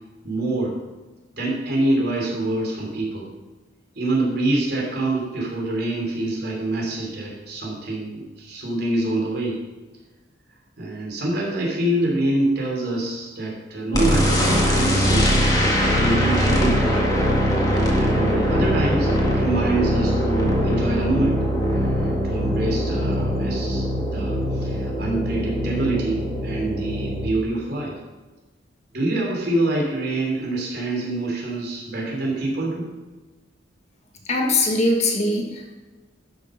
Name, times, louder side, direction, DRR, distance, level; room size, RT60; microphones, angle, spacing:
voice 1, 0.2-0.7 1.4-3.3 4.0-9.6 10.8-15.5 15.9-17.1 18.0-21.4 21.7-23.8 24.1-28.0 28.9-32.9, right 2 dB, 55° right, -2 dB, 3.4 m, -25 dB
sound 1, 13.9-27.3, equal, 20° left, 1.8 m, -21 dB
voice 2, 34.3-35.7, left 2 dB, 35° left, 1 dB, 1.5 m, -21 dB
12.5 x 6.6 x 5.3 m, 1.2 s
head